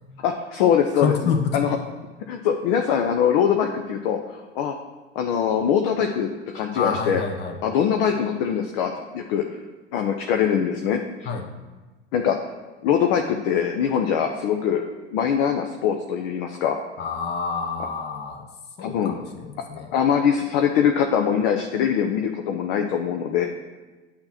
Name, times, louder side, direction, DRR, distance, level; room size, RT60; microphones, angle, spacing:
voice 1, 0.2-1.7 2.3-4.8 5.1-7.2 7.6-9.4 9.9-11.3 12.1-12.4 12.8-14.8 15.1-16.8 18.8-19.2 19.9-23.5, left 8 dB, 50° left, 4 dB, 0.6 m, -23 dB
voice 2, 0.9-1.8 6.7-7.6 11.2-11.5 17.0-18.4 18.8-19.9, left 5 dB, 30° left, 4 dB, 0.9 m, -28 dB
8.6 x 2.9 x 5.8 m, 1.3 s
hypercardioid pair, 95°, 36 cm